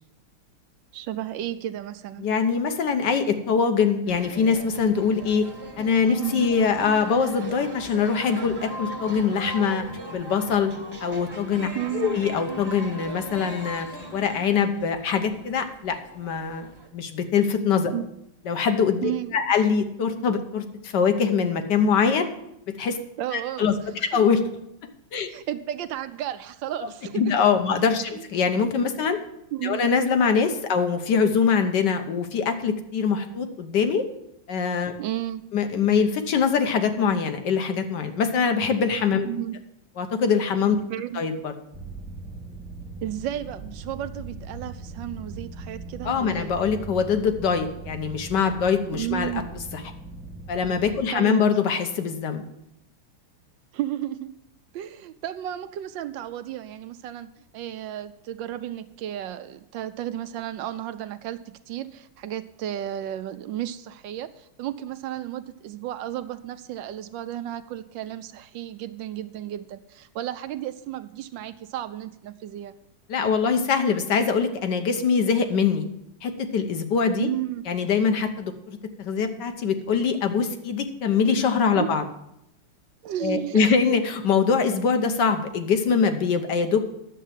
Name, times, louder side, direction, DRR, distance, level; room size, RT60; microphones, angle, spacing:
voice 1, 0.9-2.3 6.2-6.5 11.7-12.2 17.9-18.1 19.0-19.4 23.2-23.6 23.9-24.3 25.3-27.3 28.1-28.3 29.5-29.9 35.0-35.4 39.2-39.5 40.9-41.2 43.0-46.5 48.9-49.4 51.1-51.7 53.7-54.3 54.7-57.3 57.5-72.7 77.2-77.6 81.7-82.1 83.0-83.7, right 12 dB, 75° right, 12 dB, 1.1 m, -33 dB
voice 2, 2.2-5.5 5.8-9.8 10.1-10.7 11.0-11.7 11.9-13.9 14.1-16.7 16.9-17.9 18.5-22.3 22.7-23.0 23.3-24.4 25.1-25.3 27.1-29.2 29.6-34.0 34.5-34.9 35.5-39.3 40.0-40.8 41.1-41.5 46.0-49.3 49.7-49.8 50.5-52.4 73.1-75.8 76.2-77.3 77.7-82.0 83.2-86.8, left 6 dB, 60° left, 8 dB, 1.4 m, -23 dB
sound 1, 4.1-16.9, right 1 dB, 15° right, 1.0 m, -39 dB
sound 2, 41.7-51.0, right 2 dB, 5° left, 0.4 m, -39 dB
10.0 x 7.4 x 7.4 m, 0.81 s
omnidirectional pair, 2.3 m